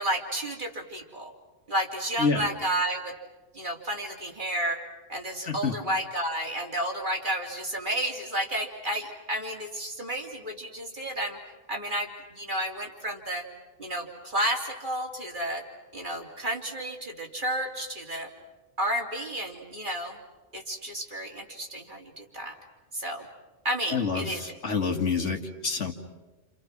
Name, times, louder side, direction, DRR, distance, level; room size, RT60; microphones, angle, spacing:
voice 1, 0.0-1.3 1.7-3.1 3.5-4.8 5.1-11.4 11.7-13.4 13.8-15.6 15.9-18.3 18.8-20.2 20.5-22.5 22.9-23.3 23.6-24.5, right 1 dB, 45° right, 0 dB, 3.4 m, -31 dB
voice 2, 23.9-25.9, left 5 dB, 80° left, 3 dB, 2.5 m, -27 dB
29.5 x 28.5 x 6.1 m, 1.2 s
omnidirectional pair, 1.2 m